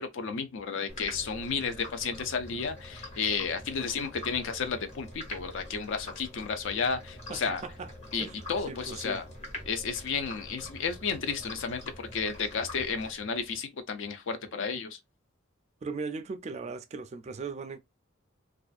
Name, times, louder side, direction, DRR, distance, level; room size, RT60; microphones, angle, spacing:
voice 1, 0.0-7.6 8.1-9.2 9.7-15.0, left 5 dB, 65° left, 0.5 m, -32 dB
sound 1, 0.9-13.6, left 1 dB, 30° left, 0.9 m, -45 dB
voice 2, 7.3-7.9 8.2-8.4 8.7-9.2 15.8-17.8, right 4 dB, 35° right, 0.3 m, -38 dB
2.4 x 2.4 x 2.4 m
head